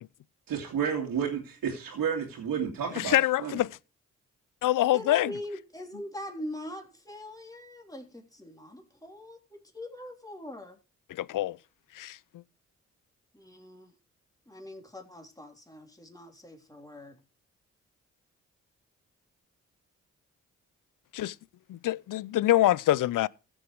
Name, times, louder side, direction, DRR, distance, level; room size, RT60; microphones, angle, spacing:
voice 1, 0.5-3.6, right 7 dB, 75° right, 2.6 m, -31 dB
voice 2, 3.0-3.8 4.6-5.3 11.1-11.6 11.9-12.2 21.1-21.4 21.7-23.3, left 14 dB, 65° left, 0.6 m, -25 dB
voice 3, 4.9-10.8 13.3-13.9 14.5-17.2, left 1 dB, 10° left, 3.5 m, -42 dB
15.0 x 7.2 x 4.6 m
hypercardioid pair, 45°, 35 cm